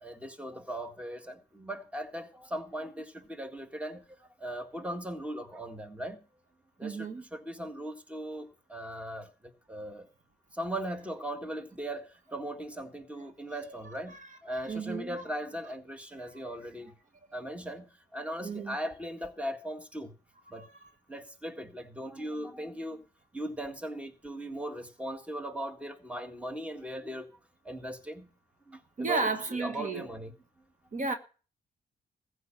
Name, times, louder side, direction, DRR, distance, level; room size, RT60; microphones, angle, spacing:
voice 1, 0.0-4.1 4.4-6.2 6.8-9.3 9.7-10.1 10.5-16.9 17.3-20.1 20.5-20.6 21.1-23.0 23.3-27.3 27.7-28.3 28.7-29.3 29.6-30.3, right 1 dB, 5° right, 1.8 m, -38 dB
voice 2, 6.8-7.2 13.8-14.3 14.7-15.2 18.4-18.8 20.5-20.7 29.0-30.1 30.9-31.1, right 4 dB, 45° right, 1.7 m, -33 dB
15.0 x 5.0 x 8.9 m
cardioid pair, 75°, 17 cm